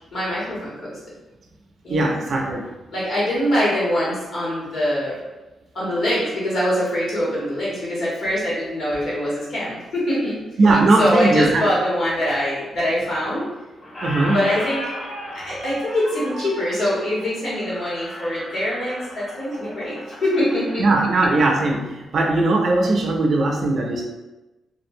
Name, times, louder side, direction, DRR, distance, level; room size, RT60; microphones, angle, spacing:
voice 1, 0.1-1.0 1.8-2.1 2.9-5.1 5.7-10.4 11.0-13.5 14.2-14.8 15.3-20.9, equal, 55° left, -8 dB, 1.2 m, -23 dB
voice 2, 1.9-2.6 10.6-11.6 14.0-14.4 20.8-21.8 22.1-24.1, right 2 dB, 50° right, 0 dB, 0.3 m, -18 dB
Squeak, 13.0-13.5 13.8-21.4, equal, 30° left, 0.8 m, -35 dB
2.5 x 2.4 x 2.6 m, 1.1 s
wide cardioid pair, 150°, 0 cm